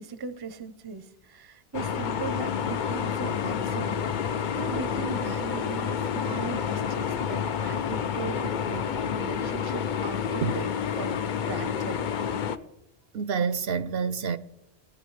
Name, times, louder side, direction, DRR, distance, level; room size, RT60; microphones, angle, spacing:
voice 1, 0.0-10.7 11.0-11.2 11.5-12.0, right 5 dB, 30° right, 0.5 m, -38 dB
sound 1, 1.7-12.6, left 7 dB, 55° left, 0.6 m, -29 dB
voice 2, 13.1-14.4, right 6 dB, 70° right, 0.8 m, -27 dB
18.0 x 9.8 x 3.1 m
omnidirectional pair, 1.1 m